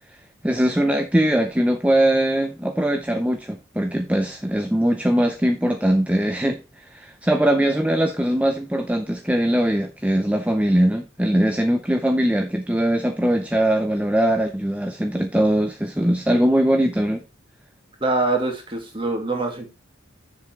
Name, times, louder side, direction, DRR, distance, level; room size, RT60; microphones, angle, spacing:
voice 1, 0.4-17.2, right 1 dB, 5° right, 0.6 m, -21 dB
voice 2, 18.0-19.7, right 2 dB, 25° right, 2.3 m, -24 dB
7.4 x 6.7 x 4.4 m
head